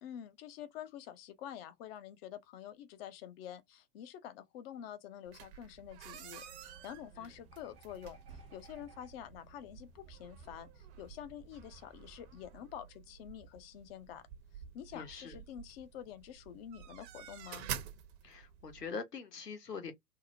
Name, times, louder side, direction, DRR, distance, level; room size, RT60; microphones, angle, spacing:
voice 1, 0.0-8.2 8.5-14.2 14.7-17.7, left 10 dB, 40° left, 0.6 m, -48 dB
sound 1, 5.3-18.9, right 9 dB, 50° right, 0.7 m, -50 dB
sound 2, 6.4-12.6, right 4 dB, 15° right, 0.3 m, -61 dB
voice 2, 14.9-15.4 18.2-19.9, left 5 dB, 90° left, 0.8 m, -43 dB
2.6 x 2.0 x 2.5 m
figure-of-eight pair, 95°, 46 cm